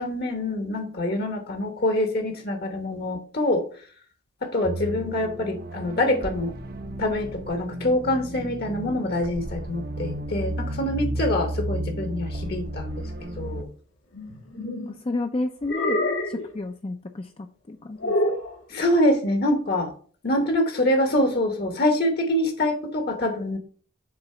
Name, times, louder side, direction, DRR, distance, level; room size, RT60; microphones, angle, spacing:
voice 1, 0.0-3.7 4.4-6.5 7.0-13.1 13.4-13.7 18.7-19.9 20.2-23.6, left 1 dB, 50° left, 6 dB, 1.1 m, -25 dB
sound 1, 4.6-13.6, right 1 dB, 50° right, 0.7 m, -33 dB
sound 2, 14.1-14.9 15.7-16.5 18.0-18.5, left 1 dB, 85° left, 1.8 m, -26 dB
voice 2, 14.9-18.1, left 2 dB, 30° left, 6 dB, 0.4 m, -31 dB
6.8 x 4.0 x 5.6 m, 0.43 s
head